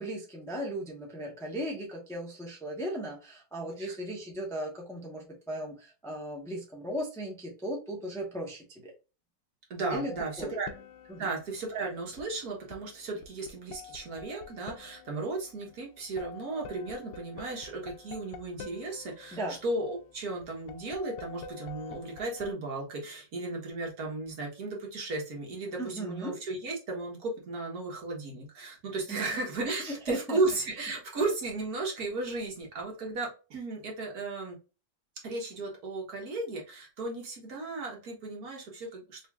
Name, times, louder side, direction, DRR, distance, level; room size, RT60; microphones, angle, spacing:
voice 1, 0.0-8.9 9.9-10.1 10.4-10.5 11.1-11.3 19.3-19.6 25.8-26.3 29.1-29.3 29.8-30.4, right 1 dB, 5° left, -1 dB, 0.7 m, -37 dB
voice 2, 9.7-10.7 11.2-34.6 35.2-39.3, right 3 dB, 60° right, 0 dB, 1.6 m, -35 dB
sound 1, 9.9-22.5, left 7 dB, 80° left, 1.2 m, -49 dB
3.9 x 3.1 x 2.3 m, 0.31 s
omnidirectional pair, 1.9 m